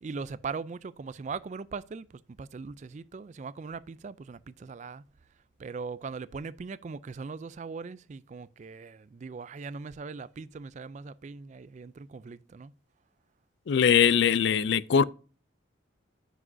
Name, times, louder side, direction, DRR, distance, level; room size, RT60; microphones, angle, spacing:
voice 1, 0.0-5.0 5.6-12.7, right 4 dB, 35° right, 0.3 m, -40 dB
voice 2, 13.7-15.0, left 7 dB, 60° left, 0.3 m, -21 dB
9.2 x 6.1 x 2.6 m
head